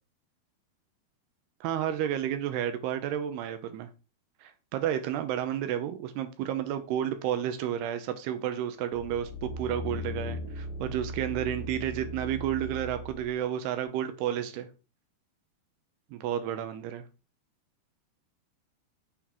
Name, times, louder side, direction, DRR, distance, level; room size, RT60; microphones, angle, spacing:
voice 1, 1.6-3.9 4.4-14.7 16.1-17.1, right 10 dB, 80° right, 9 dB, 2.9 m, -31 dB
sound 1, 9.0-13.3 13.8-13.9, left 1 dB, 55° left, 2.2 m, -38 dB
7.3 x 4.5 x 4.5 m, 0.32 s
omnidirectional pair, 4.8 m